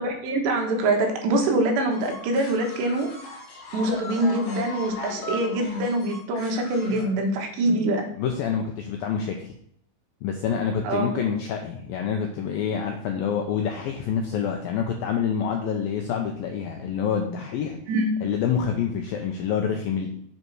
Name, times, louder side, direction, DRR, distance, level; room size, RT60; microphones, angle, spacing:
voice 1, 0.0-3.1 3.7-8.1 10.9-11.2 17.9-18.1, right 1 dB, 75° right, 3 dB, 3.5 m, -24 dB
sound 1, 1.9-7.0, left 2 dB, 55° left, 3.8 m, -38 dB
voice 2, 8.2-9.5 10.2-17.8 18.2-20.1, left 7 dB, 85° left, 3 dB, 2.1 m, -27 dB
8.1 x 7.4 x 4.7 m, 0.69 s
omnidirectional pair, 5.1 m